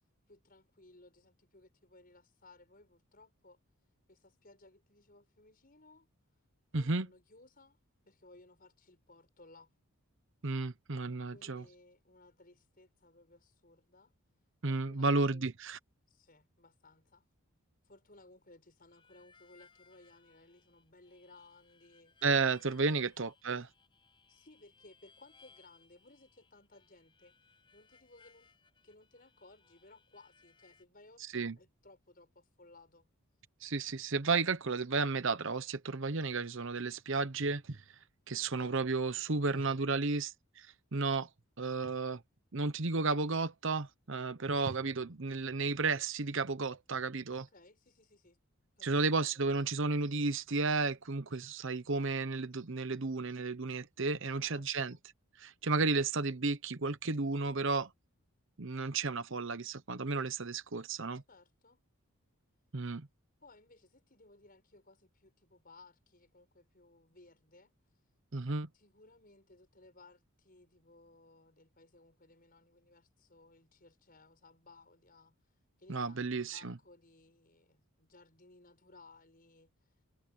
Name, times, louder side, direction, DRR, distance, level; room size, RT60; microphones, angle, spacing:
voice 1, 0.3-3.6 4.1-6.1 6.7-7.8 8.1-9.7 11.1-14.1 14.6-15.5 16.1-17.2 17.8-22.2 22.8-23.1 24.3-27.3 27.7-28.5 28.8-33.1 38.4-38.8 39.2-40.3 47.3-48.4 48.8-49.4 54.3-55.0 61.3-61.8 63.4-67.7 68.7-75.3 75.8-80.0, left 2 dB, 40° left, 6.2 m, -60 dB
voice 2, 6.7-7.1 10.4-11.6 14.6-15.8 22.2-23.7 31.3-31.5 33.6-37.8 38.3-40.7 40.9-41.3 41.6-42.2 42.5-47.4 48.8-55.0 55.4-57.9 58.6-61.2 62.7-63.1 68.3-68.7 75.9-76.8, right 3 dB, 55° right, 0.9 m, -33 dB
Harmonica, 18.9-30.9, left 5 dB, 20° left, 7.2 m, -65 dB
head